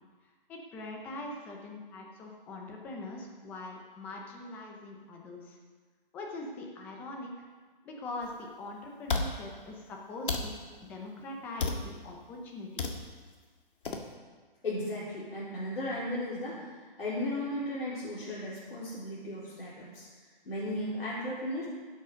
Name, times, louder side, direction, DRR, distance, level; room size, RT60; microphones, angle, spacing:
voice 1, 0.2-5.6 6.1-7.3 7.8-10.5 10.8-12.8, left 2 dB, 5° left, 0 dB, 0.7 m, -42 dB
sound 1, 8.2-8.3 9.1-9.3 10.3-10.5 11.6-11.9 12.8-13.0 13.8-14.0, left 4 dB, 65° left, 1.8 m, -30 dB
voice 2, 14.6-16.7 17.0-20.1 20.4-21.6, left 1 dB, 85° left, -9 dB, 4.4 m, -35 dB
16.5 x 8.4 x 5.1 m, 1.5 s
hypercardioid pair, 165°, 29 cm